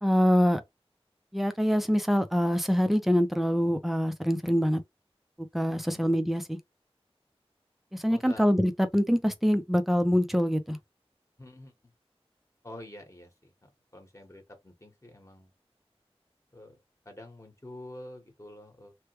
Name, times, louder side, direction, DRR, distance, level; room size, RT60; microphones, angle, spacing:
voice 1, 0.0-0.6 1.3-4.8 5.5-6.6 7.9-10.8, equal, ahead, 0.6 m, -25 dB
voice 2, 8.1-8.4 11.4-11.7 12.6-15.5 16.5-16.8 17.0-19.0, left 1 dB, 30° left, 1.3 m, -47 dB
3.3 x 2.2 x 3.1 m
wide cardioid pair, 45°, 11 cm